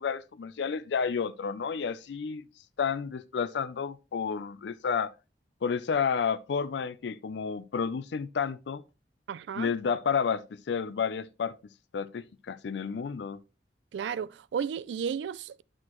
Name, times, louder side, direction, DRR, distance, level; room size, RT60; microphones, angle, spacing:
voice 1, 0.0-2.5 2.8-5.1 5.6-8.8 9.6-11.6 11.9-13.4, left 6 dB, 75° left, 0.4 m, -31 dB
voice 2, 9.3-9.7 13.9-15.6, right 7 dB, 80° right, 0.3 m, -33 dB
9.5 x 6.2 x 3.0 m
head